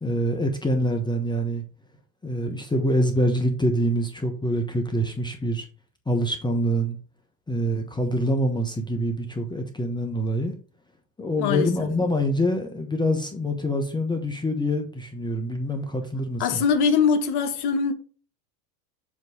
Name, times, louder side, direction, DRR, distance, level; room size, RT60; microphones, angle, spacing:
voice 1, 0.0-1.6 2.2-5.6 6.1-7.0 7.5-10.5 11.2-16.6, equal, 10° left, 0.9 m, -25 dB
voice 2, 11.4-11.9 16.4-17.9, left 6 dB, 50° left, 1.4 m, -22 dB
7.3 x 3.1 x 5.4 m
hypercardioid pair, 105°, 50 cm